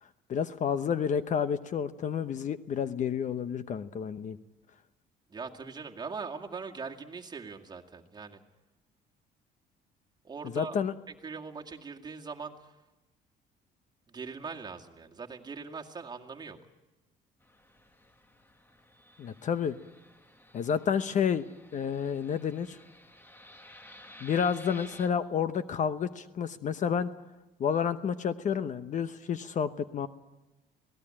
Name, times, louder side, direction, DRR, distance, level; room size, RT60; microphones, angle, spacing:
voice 1, 0.3-4.4 10.5-10.9 19.2-19.8 20.5-21.5 21.7-22.8 24.2-27.1 27.6-30.1, left 7 dB, 45° left, 12 dB, 0.9 m, -30 dB
voice 2, 5.3-8.4 10.2-10.8 11.1-12.8 14.1-16.6, right 5 dB, 25° right, 1 dB, 2.2 m, -41 dB
Fixed-wing aircraft airplane, 17.4-25.1, left 1 dB, 10° left, 1.5 m, -54 dB
25.5 x 18.0 x 8.9 m, 1.1 s
cardioid pair, 110°, 17 cm